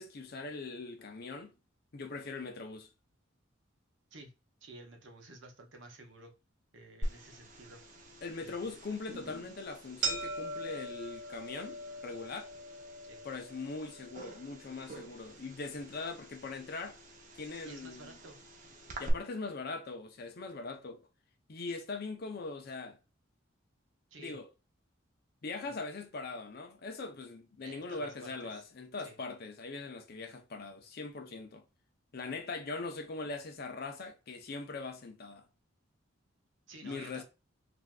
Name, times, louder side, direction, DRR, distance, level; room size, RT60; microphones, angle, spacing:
voice 1, 0.0-1.5 1.9-2.9 8.2-12.5 13.2-17.0 17.3-18.1 19.0-21.0 21.5-23.0 24.2-24.5 25.4-31.6 32.1-35.5 36.8-37.2, left 3 dB, 50° left, 0.6 m, -41 dB
voice 2, 4.6-6.3 6.7-7.8 8.4-8.7 13.0-13.2 17.6-18.4 24.1-24.4 25.6-25.8 27.6-28.6 29.0-29.2 36.7-37.2, right 2 dB, 70° right, 0.8 m, -52 dB
sound 1, 7.0-19.1, right 2 dB, 40° right, 0.6 m, -43 dB
3.3 x 2.6 x 2.3 m
head